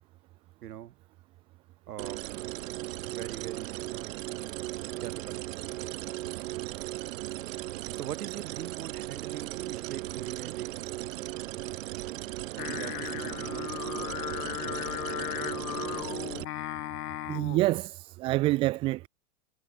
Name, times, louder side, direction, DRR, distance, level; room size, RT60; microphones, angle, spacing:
voice 1, 0.6-0.9 1.9-2.2 3.1-4.1 5.0-5.4 7.9-11.2 12.5-13.8, right 11 dB, 80° right, 5.0 m, -42 dB
sound 1, 2.0-16.4, right 17 dB, 60° right, 1.1 m, -37 dB
Singing, 12.6-17.7, left 14 dB, 85° left, 1.1 m, -36 dB
voice 2, 17.3-19.1, right 19 dB, 15° right, 0.4 m, -27 dB
supercardioid pair, 155°, 45 cm